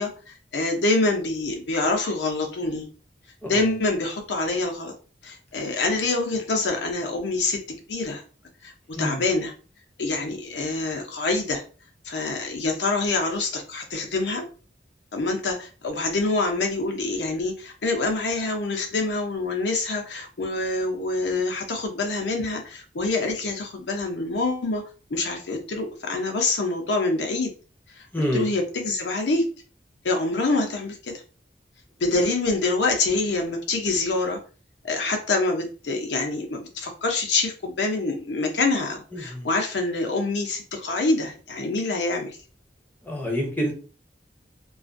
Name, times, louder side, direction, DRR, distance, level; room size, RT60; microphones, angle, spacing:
voice 1, 0.0-2.9 3.5-4.9 5.2-8.2 8.6-9.5 10.0-11.6 12.0-14.4 15.1-24.8 25.1-27.5 28.0-28.1 28.3-29.4 30.0-31.1 32.0-34.4 34.8-42.4, left 3 dB, 80° left, 3 dB, 0.6 m, -26 dB
voice 2, 28.1-28.5 32.2-32.3 39.1-39.5 43.0-43.7, equal, 10° left, 0 dB, 0.6 m, -27 dB
2.4 x 2.3 x 2.4 m, 0.36 s
head